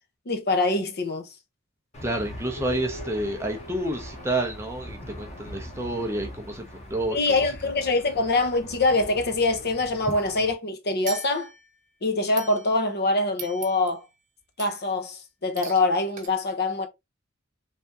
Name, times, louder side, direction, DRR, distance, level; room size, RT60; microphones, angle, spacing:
voice 1, 0.3-1.3 7.1-11.5 12.0-14.0 14.6-16.9, left 2 dB, 55° left, 0.8 m, -24 dB
Aircraft / Engine, 1.9-10.5, equal, 35° left, 1.1 m, -42 dB
voice 2, 2.0-6.6 6.9-7.2, right 1 dB, 15° right, 0.5 m, -29 dB
sound 1, 2.6-5.1, left 1 dB, 80° left, 1.0 m, -43 dB
sound 2, 11.1-11.8 12.4-13.0 13.4-14.1 14.6-15.0 15.6-15.9 16.2-16.3, right 5 dB, 40° right, 1.0 m, -41 dB
3.4 x 3.4 x 2.7 m
head